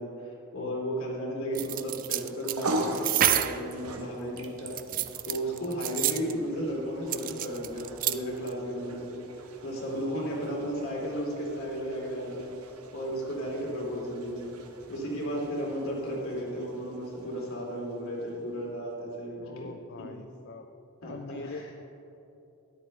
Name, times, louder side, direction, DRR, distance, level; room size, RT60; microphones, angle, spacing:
voice 1, 0.0-4.8 5.3-9.2 9.6-12.5 12.9-14.6 14.9-19.7 20.0-20.1 21.0-21.7, equal, 70° left, -3 dB, 2.8 m, -34 dB
sound 1, 1.5-3.6 4.7-6.3 7.1-8.2 8.5-8.6, right 12 dB, 40° right, 0.3 m, -28 dB
sound 2, 2.2-18.7, right 1 dB, 90° right, 1.0 m, -42 dB
voice 2, 19.4-20.7 21.1-21.7, left 4 dB, 50° left, 7 dB, 0.4 m, -43 dB
13.0 x 11.0 x 3.3 m, 3.0 s
head